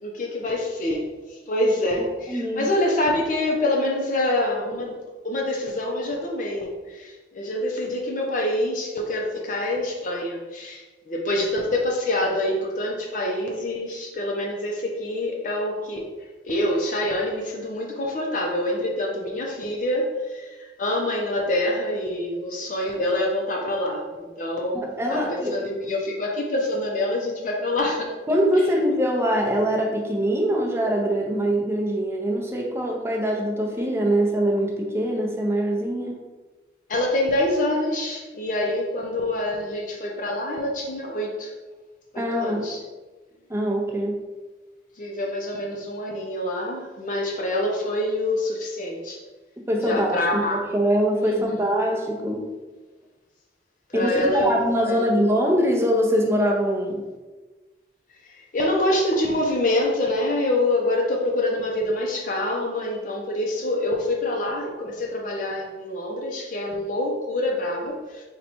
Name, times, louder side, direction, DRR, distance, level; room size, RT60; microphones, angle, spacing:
voice 1, 0.0-1.0 1.3-5.0 5.2-16.1 16.4-28.1 36.9-41.5 42.1-42.8 45.0-49.2 49.8-50.6 51.3-51.5 53.9-54.6 54.8-55.0 58.4-68.2, left 1 dB, 45° left, -1 dB, 0.5 m, -26 dB
voice 2, 2.3-2.7 24.7-25.7 28.3-36.2 42.2-42.7 43.5-44.2 49.7-52.4 53.9-57.0, equal, 15° right, 0 dB, 0.5 m, -23 dB
4.0 x 2.2 x 4.3 m, 1.3 s
head